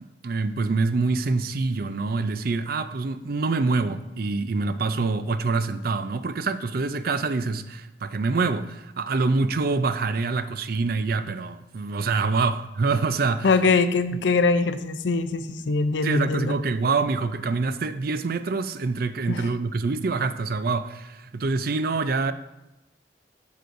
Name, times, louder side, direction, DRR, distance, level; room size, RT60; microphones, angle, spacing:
voice 1, 0.2-13.5 16.0-22.3, right 3 dB, 55° right, 0.4 m, -25 dB
voice 2, 13.4-16.6 19.3-19.5, left 4 dB, 85° left, 0.5 m, -22 dB
12.0 x 6.7 x 2.6 m
head